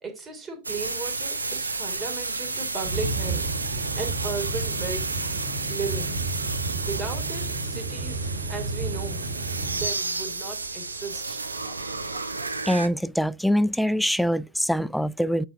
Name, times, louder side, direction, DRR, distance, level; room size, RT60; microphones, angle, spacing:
voice 1, 0.0-5.1 5.7-6.2 6.8-9.2 9.7-11.4, right 4 dB, 20° right, 3.3 m, -36 dB
sound 1, 0.6-12.9, right 3 dB, 80° right, 0.9 m, -31 dB
sound 2, 2.8-9.9, right 3 dB, 60° right, 1.3 m, -32 dB
voice 2, 12.7-15.5, equal, ahead, 0.4 m, -24 dB
8.8 x 4.8 x 3.7 m
figure-of-eight pair, 90°, 0 cm